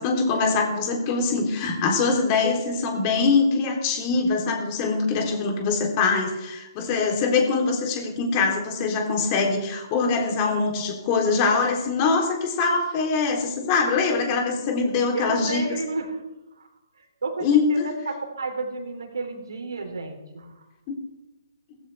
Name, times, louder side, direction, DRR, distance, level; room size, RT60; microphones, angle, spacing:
voice 1, 0.0-15.8 17.4-17.9 20.9-21.0, left 4 dB, 30° left, 2 dB, 3.4 m, -23 dB
voice 2, 15.1-16.2 16.6-16.7 17.0-20.5, right 3 dB, 70° right, 3 dB, 3.6 m, -32 dB
18.0 x 15.0 x 3.5 m, 1.0 s
figure-of-eight pair, 135°, 2 cm